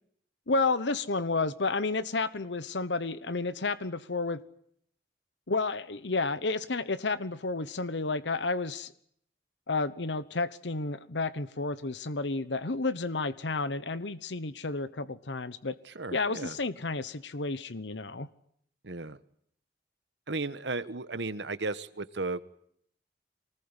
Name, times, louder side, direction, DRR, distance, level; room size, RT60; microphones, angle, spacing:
voice 1, 0.5-4.4 5.5-8.9 9.7-15.7 16.1-18.3, left 3 dB, 90° left, 15 dB, 1.1 m, -31 dB
voice 2, 15.8-16.6 18.8-19.2 20.3-22.4, right 3 dB, 90° right, 14 dB, 1.3 m, -35 dB
24.0 x 20.0 x 9.9 m, 0.68 s
head